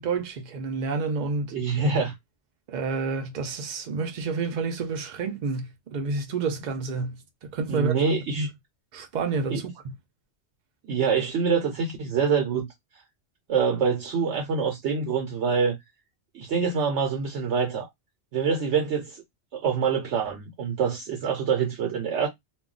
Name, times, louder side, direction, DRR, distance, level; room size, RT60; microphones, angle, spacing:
voice 1, 0.0-1.5 2.7-7.9 8.4-8.5 8.9-9.9, right 4 dB, 50° right, 0.6 m, -29 dB
voice 2, 1.5-2.1 7.7-8.5 9.5-9.6 10.9-12.7 13.5-15.8 16.3-17.9 18.3-19.2 19.5-22.3, right 6 dB, 80° right, 1.0 m, -25 dB
2.2 x 2.2 x 3.8 m
omnidirectional pair, 1.2 m